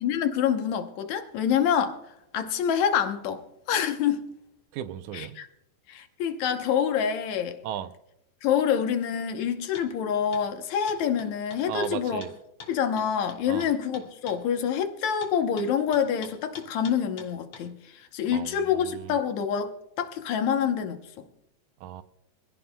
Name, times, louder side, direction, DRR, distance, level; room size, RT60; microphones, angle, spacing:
voice 1, 0.0-2.0 2.3-3.4 3.7-4.2 5.1-5.5 5.9-7.6 8.4-12.2 12.7-19.7 20.0-21.0, left 8 dB, 75° left, 2.2 m, -26 dB
voice 2, 4.7-5.4 7.6-7.9 11.7-12.3 13.5-13.7 18.3-18.5 18.9-19.2 21.8-22.0, right 10 dB, 80° right, 2.1 m, -35 dB
sound 1, 9.7-9.9 10.3-10.5 10.9-14.4 15.2-17.7, left 5 dB, 55° left, 2.5 m, -45 dB
25.0 x 16.0 x 2.2 m
omnidirectional pair, 3.4 m